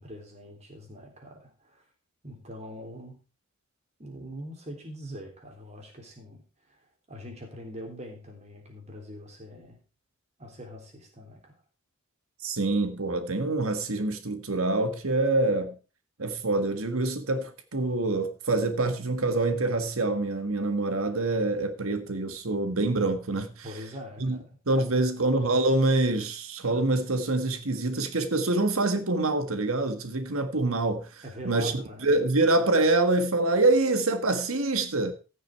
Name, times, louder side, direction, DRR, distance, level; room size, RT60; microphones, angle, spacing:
voice 1, 0.0-1.8 2.2-3.2 4.0-6.4 7.1-9.8 10.4-11.5 23.6-25.1 31.2-32.0, equal, 30° right, 3.6 m, -43 dB
voice 2, 12.4-15.7 16.2-23.7 24.2-24.4 24.7-35.1, right 2 dB, 85° right, 1.6 m, -26 dB
15.0 x 6.5 x 4.6 m
head